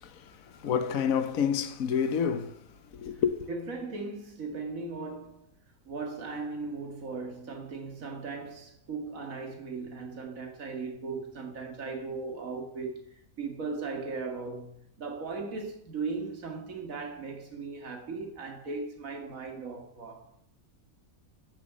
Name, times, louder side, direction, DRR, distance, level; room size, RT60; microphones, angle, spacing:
voice 1, 0.0-3.5, left 7 dB, 70° left, 1.3 m, -29 dB
voice 2, 3.5-5.5 5.9-20.3, right 4 dB, 65° right, 2.4 m, -38 dB
8.5 x 7.0 x 7.6 m
omnidirectional pair, 1.5 m